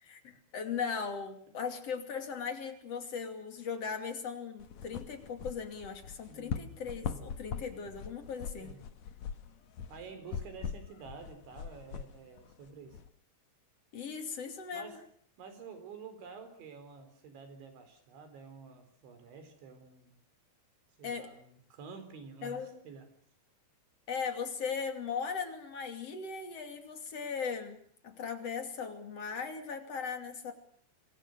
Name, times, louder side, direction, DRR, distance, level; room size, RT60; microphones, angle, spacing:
voice 1, 0.0-8.7 13.9-15.0 21.0-21.3 22.4-22.8 24.1-27.8 28.0-30.5, left 6 dB, 40° left, 6 dB, 3.2 m, -38 dB
sound 1, 4.6-13.1, left 7 dB, 65° left, 1.8 m, -42 dB
voice 2, 6.3-6.7 7.0-7.3 8.6-8.9 9.9-13.0 14.7-15.0 15.4-20.2 21.0-23.1, right 5 dB, 85° right, 9 dB, 6.5 m, -49 dB
27.5 x 23.0 x 6.6 m, 0.62 s
omnidirectional pair, 5.2 m